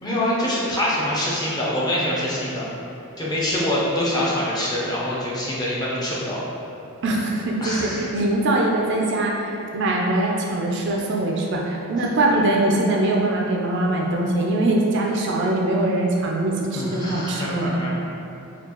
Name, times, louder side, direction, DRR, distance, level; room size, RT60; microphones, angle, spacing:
voice 1, 0.0-2.7 3.2-6.4 7.6-8.0 16.8-17.9, left 1 dB, 15° left, -7 dB, 0.5 m, -25 dB
voice 2, 7.0-17.8, right 2 dB, 50° right, -1 dB, 0.4 m, -22 dB
4.4 x 2.3 x 2.8 m, 2.7 s
head